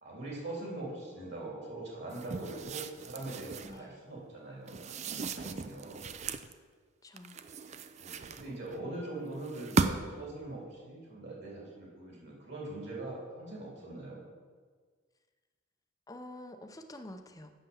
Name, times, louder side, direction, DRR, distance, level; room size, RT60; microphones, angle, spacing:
voice 1, 0.0-6.1 8.0-14.2, right 2 dB, 55° right, -4 dB, 3.4 m, -42 dB
sound 1, 2.1-3.8 4.7-6.5 7.2-8.8 9.4-10.2, right 4 dB, 35° right, 0.4 m, -36 dB
voice 2, 3.6-4.0 7.0-7.4 16.1-17.5, left 1 dB, 15° left, 7 dB, 0.6 m, -48 dB
7.8 x 6.7 x 7.0 m, 1.5 s
head